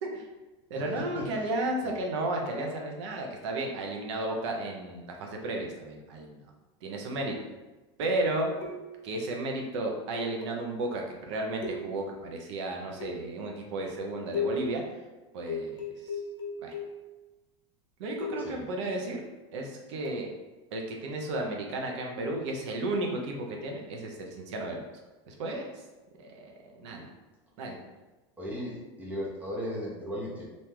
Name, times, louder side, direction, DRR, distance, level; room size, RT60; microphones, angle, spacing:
voice 1, 0.7-6.4 6.8-7.4 8.0-8.5 9.0-14.8 15.3-16.2 16.6-16.7 18.0-19.2 19.5-20.3 20.7-24.8 25.3-25.8 26.2-27.1 27.6-27.8, right 2 dB, 75° right, 1 dB, 0.8 m, -33 dB
sound 1, 8.6-9.2 10.4-10.8 11.6-12.2 13.0-13.5 14.3-14.8 15.5-17.1 18.2-18.6 20.0-20.3, left 3 dB, 55° left, 0.9 m, -36 dB
voice 2, 28.4-30.4, equal, 10° right, -4 dB, 0.9 m, -36 dB
3.0 x 2.6 x 3.6 m, 1.1 s
supercardioid pair, 130°, 15 cm